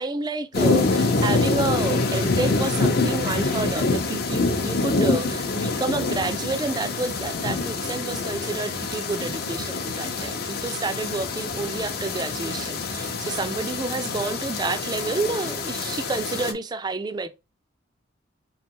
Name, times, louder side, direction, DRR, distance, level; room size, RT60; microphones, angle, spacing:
voice 1, 0.0-17.3, right 3 dB, 20° right, 0.3 m, -29 dB
sound 1, 0.5-16.5, left 3 dB, 50° left, 0.6 m, -26 dB
3.7 x 3.2 x 2.9 m
head